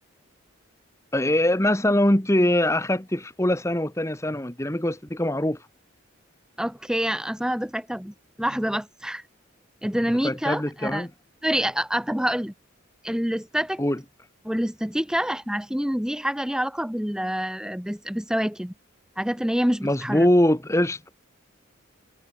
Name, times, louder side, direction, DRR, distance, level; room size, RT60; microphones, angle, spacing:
voice 1, 1.1-5.6 10.1-11.1 13.8-14.0 19.8-21.1, left 1 dB, 15° left, 1.5 m, -23 dB
voice 2, 6.6-9.2 9.8-11.1 11.4-12.5 13.0-13.8 14.4-18.7 19.2-20.3, equal, 5° right, 0.9 m, -27 dB
head